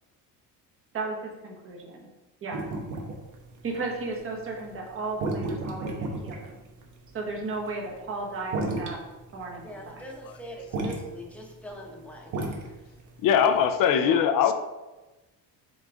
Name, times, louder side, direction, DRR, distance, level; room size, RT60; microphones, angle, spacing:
voice 1, 0.9-2.1 2.4-2.7 3.6-6.6 7.1-9.0 9.3-10.0 14.0-14.2, right 3 dB, 35° right, -1 dB, 1.5 m, -35 dB
sound 1, 2.5-13.7, right 2 dB, 55° right, 1.2 m, -34 dB
voice 2, 9.6-12.8, equal, 5° left, -1 dB, 1.0 m, -42 dB
voice 3, 13.2-14.5, left 8 dB, 65° left, 9 dB, 0.7 m, -21 dB
7.8 x 3.9 x 3.6 m, 1.1 s
cardioid pair, 150°, 35 cm